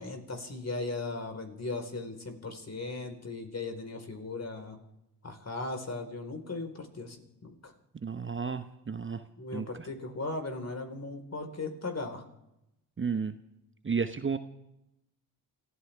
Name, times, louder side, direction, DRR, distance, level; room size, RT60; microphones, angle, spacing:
voice 1, 0.0-4.8 5.2-7.7 9.4-12.2, left 3 dB, 35° left, 5 dB, 4.4 m, -37 dB
voice 2, 8.0-9.2 9.5-9.9 13.0-13.3 13.8-14.4, right 5 dB, 25° right, 9 dB, 1.1 m, -32 dB
29.0 x 14.0 x 3.6 m, 0.87 s
hypercardioid pair, 50°, 44 cm